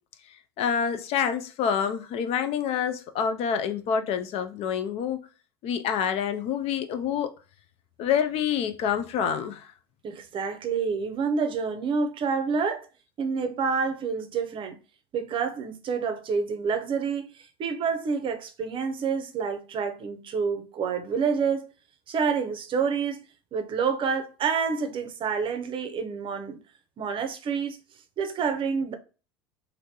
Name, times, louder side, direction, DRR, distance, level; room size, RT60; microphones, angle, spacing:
voice 1, 0.3-5.3 5.6-7.3 8.0-9.7, left 8 dB, 45° left, 0.4 m, -27 dB
voice 2, 10.0-12.9 13.2-14.8 15.1-21.7 22.1-23.2 23.5-26.6 27.0-27.8 28.2-28.9, right 5 dB, 35° right, 0.6 m, -28 dB
3.1 x 2.6 x 2.8 m
hypercardioid pair, 75°, 14 cm